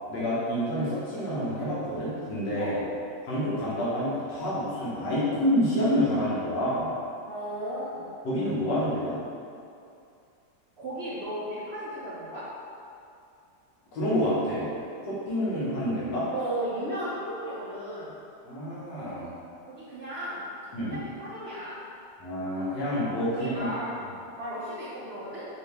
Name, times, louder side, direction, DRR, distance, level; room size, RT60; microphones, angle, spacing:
voice 1, 0.1-2.8 3.2-6.9 8.2-9.2 13.9-14.7 15.1-16.3 18.4-19.3 20.7-21.0 22.2-23.7, equal, 80° left, -8 dB, 1.7 m, -28 dB
voice 2, 7.3-8.1 10.8-12.5 16.3-18.1 19.7-20.5 20.8-21.8 23.3-24.0 24.4-25.5, right 1 dB, 80° right, -9 dB, 0.5 m, -35 dB
4.6 x 2.7 x 3.3 m, 2.5 s
omnidirectional pair, 1.9 m